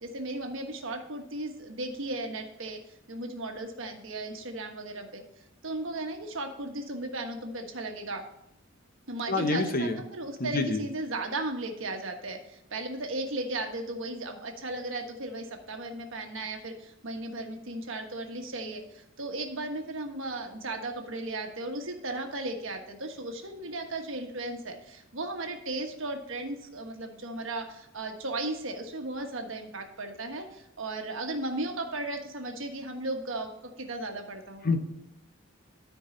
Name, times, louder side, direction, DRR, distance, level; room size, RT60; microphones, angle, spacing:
voice 1, 0.0-5.2 5.6-8.2 9.1-33.5 33.8-34.6, right 2 dB, 65° right, 4 dB, 1.3 m, -36 dB
voice 2, 9.3-10.0 10.4-10.8 34.6-34.8, left 3 dB, 45° left, 7 dB, 0.9 m, -27 dB
13.0 x 4.7 x 3.9 m, 0.86 s
head